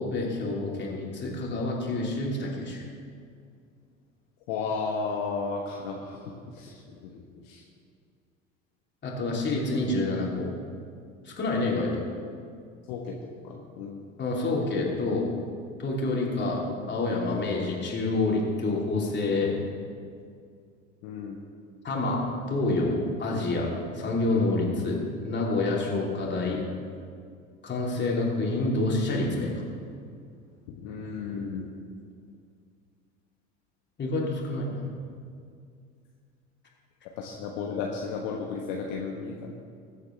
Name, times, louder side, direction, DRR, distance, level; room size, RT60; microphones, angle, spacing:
voice 1, 0.0-2.8 9.0-10.5 11.2-12.0 14.2-15.3 15.8-19.6 21.8-22.2 22.5-26.6 27.6-29.6 34.0-34.9, left 2 dB, 30° left, -3 dB, 3.3 m, -28 dB
voice 2, 4.5-6.2 6.6-6.7 7.1-7.2 7.5-7.6 12.9-13.1 13.4-14.0 21.0-21.4 30.8-31.7 37.2-39.5, left 5 dB, 55° left, 0 dB, 1.3 m, -33 dB
21.0 x 8.2 x 3.4 m, 2.3 s
figure-of-eight pair, 70°, 38 cm